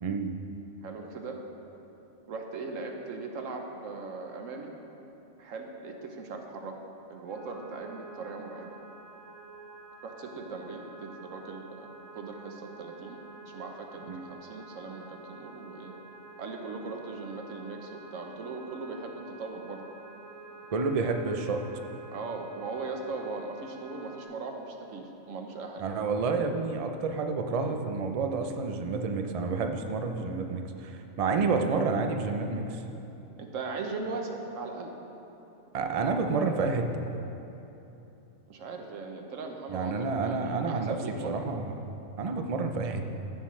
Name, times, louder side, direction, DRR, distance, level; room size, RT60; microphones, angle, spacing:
voice 1, 0.0-0.3 14.1-14.2 20.7-21.6 25.8-32.8 35.7-37.1 39.7-41.0 41.2-41.9 42.2-43.0, right 4 dB, 55° right, 5 dB, 0.4 m, -29 dB
voice 2, 0.8-1.4 2.3-4.7 5.4-6.8 7.1-8.7 10.0-13.2 13.5-15.9 16.4-19.8 21.0-21.1 22.1-25.8 33.4-34.9 38.5-41.5, right 3 dB, 70° right, 3 dB, 1.2 m, -39 dB
sound 1, 7.3-24.2, right 2 dB, 20° right, 0.8 m, -50 dB
15.0 x 7.4 x 3.2 m, 3.0 s
omnidirectional pair, 1.4 m